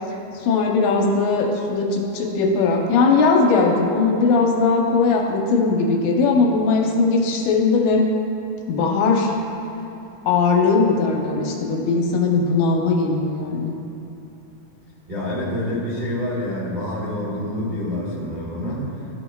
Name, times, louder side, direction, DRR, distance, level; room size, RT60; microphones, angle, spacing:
voice 1, 0.3-8.1 8.7-9.3 10.3-13.8, left 4 dB, 75° left, 0 dB, 1.9 m, -19 dB
voice 2, 15.1-18.8, left 1 dB, 70° right, -9 dB, 0.4 m, -27 dB
13.5 x 6.1 x 2.3 m, 3.0 s
omnidirectional pair, 3.7 m